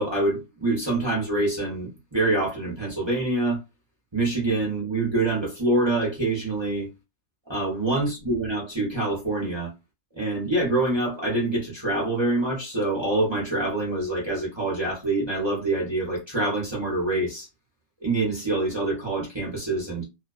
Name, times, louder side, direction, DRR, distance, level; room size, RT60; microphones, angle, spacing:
voice 1, 0.0-3.6 4.1-6.9 7.5-9.7 10.2-17.5 18.0-20.0, right 2 dB, 25° right, 0.6 m, -25 dB
2.4 x 2.2 x 2.3 m
omnidirectional pair, 1.4 m